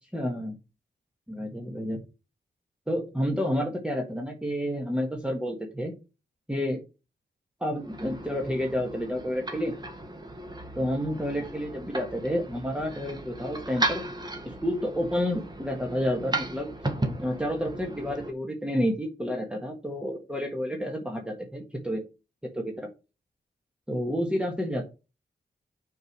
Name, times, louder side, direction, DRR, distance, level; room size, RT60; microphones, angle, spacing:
voice 1, 0.1-0.6 1.3-2.0 2.9-5.9 6.5-6.8 7.6-9.7 10.8-14.0 14.5-16.7 17.2-22.0 22.5-22.9 23.9-24.8, equal, 5° right, 1 dB, 1.6 m, -30 dB
sound 1, 7.7-18.3, right 2 dB, 20° right, 1.5 m, -35 dB
6.6 x 4.7 x 6.0 m, 0.29 s
wide cardioid pair, 85°, 19 cm